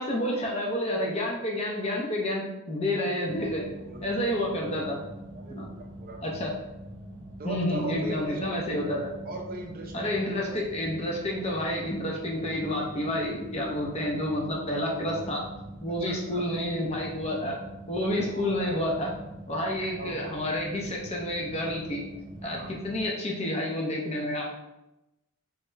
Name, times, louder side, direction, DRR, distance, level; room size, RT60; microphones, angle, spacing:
voice 1, 0.0-3.7 4.0-5.0 5.5-5.7 6.2-6.5 7.4-9.1 9.9-15.4 15.8-17.5 17.9-19.1 19.5-22.1 22.4-24.5, left 1 dB, 30° left, -2 dB, 0.6 m, -29 dB
sound 1, 3.2-23.1, right 1 dB, 20° right, 1.0 m, -44 dB
voice 2, 3.9-4.3 5.3-6.2 7.4-8.6 9.2-10.4 13.8-13.9 16.0-16.5 18.0-18.8 20.0-20.3 22.4-22.7, right 2 dB, 40° right, 1 dB, 0.5 m, -39 dB
3.2 x 2.9 x 3.3 m, 0.97 s
head